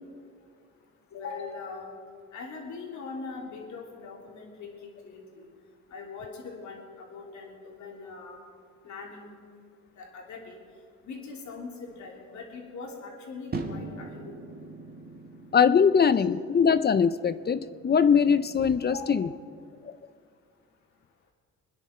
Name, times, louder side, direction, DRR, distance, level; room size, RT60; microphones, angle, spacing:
voice 1, 1.1-1.9 2.3-4.7 5.0-5.5 5.9-8.4 8.8-9.4 9.9-10.6 11.0-14.7 18.9-19.1, left 4 dB, 70° left, -1 dB, 3.2 m, -41 dB
sound 1, 13.5-19.7, right 3 dB, 30° right, 1.8 m, -42 dB
voice 2, 15.5-19.3, left 6 dB, 35° left, 13 dB, 0.5 m, -22 dB
22.5 x 10.5 x 4.4 m, 2.2 s
cardioid pair, 90°, 30 cm